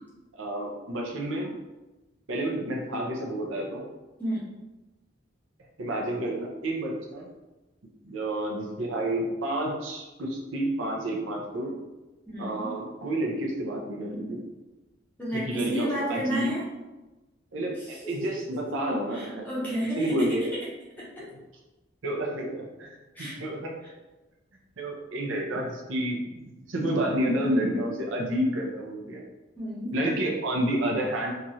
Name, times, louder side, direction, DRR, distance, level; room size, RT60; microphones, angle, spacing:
voice 1, 0.4-1.6 2.3-3.8 5.8-7.3 8.0-11.7 12.4-14.5 15.4-16.5 17.5-19.5 20.0-20.4 22.0-22.9 23.2-23.7 24.8-26.4 26.7-29.2 29.9-31.3, right 1 dB, 80° right, -1 dB, 0.6 m, -29 dB
voice 2, 4.2-4.5 12.3-12.7 15.2-16.7 17.7-18.7 19.1-20.4 21.0-21.1 23.1-23.4 29.6-29.9, equal, 10° left, -8 dB, 0.6 m, -32 dB
3.0 x 2.4 x 2.7 m, 1.1 s
head